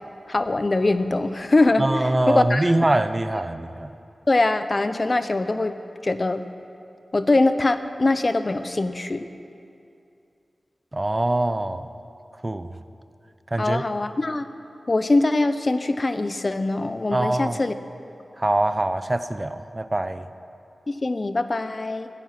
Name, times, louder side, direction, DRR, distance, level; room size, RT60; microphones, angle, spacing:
voice 1, 0.3-2.7 4.3-5.7 6.0-6.4 7.1-9.2 13.6-14.5 14.9-17.7 20.9-22.1, left 2 dB, 45° left, 11 dB, 0.8 m, -22 dB
voice 2, 1.8-3.9 10.9-11.9 12.4-12.7 13.5-13.9 17.1-17.6 18.4-20.3, right 1 dB, 30° right, 11 dB, 0.7 m, -23 dB
15.5 x 15.5 x 5.9 m, 2.6 s
cardioid pair, 45°, 0 cm